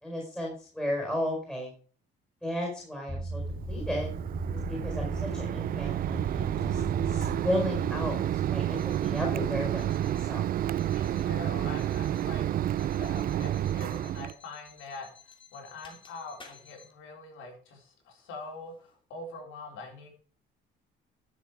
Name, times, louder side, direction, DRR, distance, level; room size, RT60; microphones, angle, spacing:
voice 1, 0.0-1.7 2.4-3.4 3.7-4.1 4.7-6.8 7.1-8.2 8.5-10.4, left 1 dB, 5° left, -2 dB, 4.8 m, -34 dB
sound 1, 3.1-8.5 8.8-9.2 9.8-10.2 10.8-11.2 11.8-12.2 12.8-16.8, equal, 25° left, 2.7 m, -40 dB
Mechanisms, 3.3-14.3, right 11 dB, 50° right, 0.4 m, -30 dB
voice 2, 10.9-20.1, left 3 dB, 90° left, 2 dB, 4.1 m, -44 dB
12.5 x 7.3 x 4.8 m, 0.42 s
cardioid pair, 120°, 19 cm